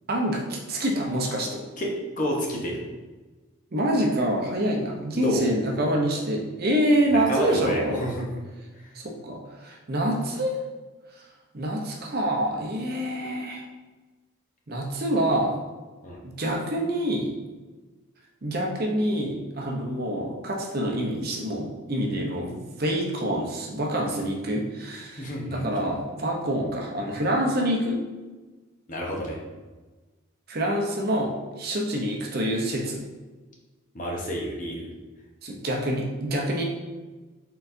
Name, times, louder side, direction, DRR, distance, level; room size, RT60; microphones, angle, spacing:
voice 1, 0.1-1.6 3.7-8.0 8.9-10.6 11.5-13.6 14.7-15.5 16.2-17.3 18.4-28.0 30.5-33.0 35.4-36.7, right 1 dB, 45° right, 0 dB, 0.7 m, -26 dB
voice 2, 1.8-2.8 5.1-5.5 7.1-8.3 8.7-8.9 16.0-16.2 25.2-25.6 28.9-29.4 33.9-34.9, equal, 40° left, -2 dB, 0.8 m, -29 dB
4.5 x 3.9 x 2.6 m, 1.2 s
head